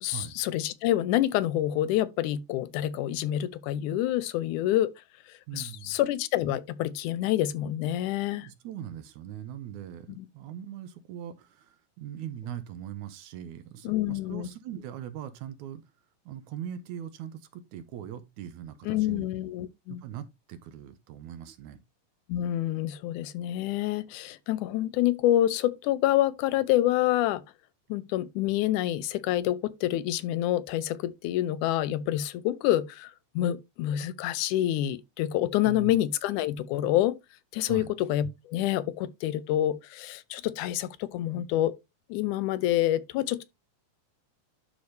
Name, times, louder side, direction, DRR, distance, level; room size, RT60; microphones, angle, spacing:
voice 1, 0.0-4.9 5.5-8.5 10.2-10.3 13.8-14.5 18.9-20.0 22.3-27.4 27.9-37.2 37.5-41.7 42.1-43.4, left 13 dB, 85° left, 2.1 m, -27 dB
voice 2, 5.5-6.0 8.3-15.8 16.3-19.3 19.9-21.8 35.6-35.9 37.7-37.9, right 10 dB, 75° right, 2.2 m, -41 dB
11.5 x 4.1 x 3.3 m
omnidirectional pair, 3.6 m